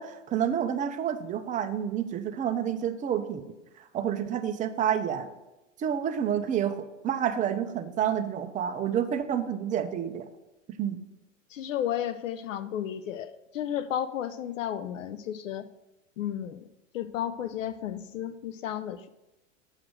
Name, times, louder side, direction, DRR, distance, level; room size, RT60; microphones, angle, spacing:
voice 1, 0.0-3.4 3.8-5.3 5.8-10.3 10.8-11.0, right 9 dB, 20° right, 7 dB, 0.6 m, -29 dB
voice 2, 11.5-15.7 16.2-16.7 16.9-19.1, left 10 dB, 80° left, 14 dB, 0.6 m, -33 dB
7.4 x 4.9 x 6.1 m, 0.97 s
hypercardioid pair, 115°, 38 cm